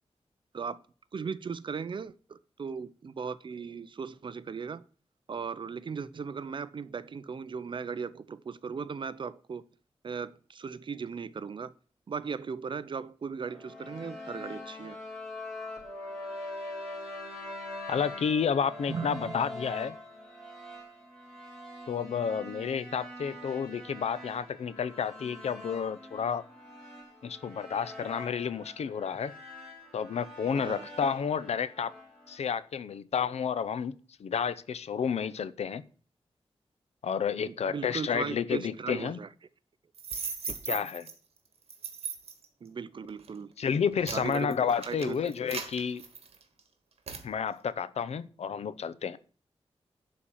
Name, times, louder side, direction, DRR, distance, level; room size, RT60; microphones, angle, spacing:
voice 1, 1.1-4.8 5.3-9.6 10.0-11.7 12.1-15.0 18.9-19.4 30.5-30.9 37.5-39.3 40.7-40.9 42.6-43.5 44.1-44.6 44.9-45.3, right 5 dB, 50° right, 0.6 m, -37 dB
sound 1, 13.4-32.4, left 1 dB, ahead, 3.2 m, -43 dB
voice 2, 17.9-19.9 21.9-26.4 27.2-29.3 29.9-31.9 32.3-35.8 37.0-39.2 40.7-41.1 43.6-46.0 47.2-49.2, left 7 dB, 85° left, 0.7 m, -31 dB
sound 2, 39.9-41.1 41.7-42.4 43.1-43.3 43.7-46.6 47.1-47.3, right 5 dB, 70° right, 1.6 m, -38 dB
11.5 x 4.4 x 7.2 m
wide cardioid pair, 165°, 11 cm